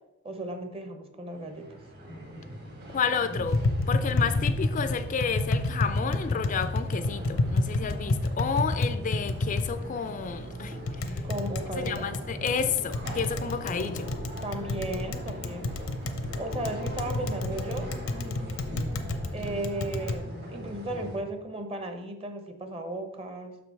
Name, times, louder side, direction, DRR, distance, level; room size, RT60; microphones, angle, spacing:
voice 1, 0.2-1.8 11.2-12.1 12.4-12.5 14.4-15.7 16.4-18.0 19.3-23.6, right 2 dB, 30° right, 7 dB, 0.8 m, -35 dB
sound 1, 1.3-21.2, equal, 50° right, 1.9 m, -40 dB
voice 2, 2.9-3.6 3.9-11.2 11.8-14.1, left 6 dB, 40° left, 10 dB, 0.4 m, -31 dB
Tap, 3.4-20.2, left 2 dB, 80° left, 0.7 m, -30 dB
6.2 x 5.1 x 4.6 m, 0.95 s
head